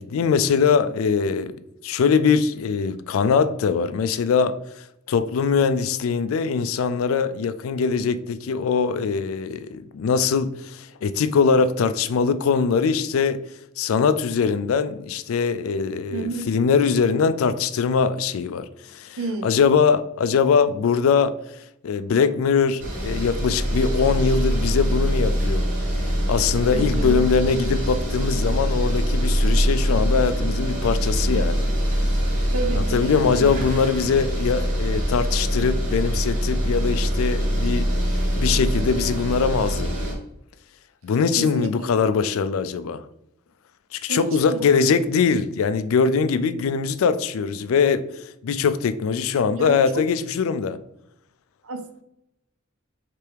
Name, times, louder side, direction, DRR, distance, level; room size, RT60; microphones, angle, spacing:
voice 1, 0.0-1.6 1.8-4.6 5.1-13.4 13.8-21.4 21.8-25.7 26.3-31.7 32.7-37.9 38.4-40.2 41.0-43.0 43.9-50.8, left 5 dB, 80° left, 0.3 m, -22 dB
voice 2, 16.1-16.5 19.2-19.6 26.7-27.3 32.5-33.5 41.4-41.9 44.1-44.8 49.6-50.1 51.6-52.0, right 3 dB, 85° right, 0.7 m, -31 dB
sound 1, 22.8-40.1, equal, 40° right, 1.5 m, -23 dB
4.6 x 3.3 x 3.4 m
head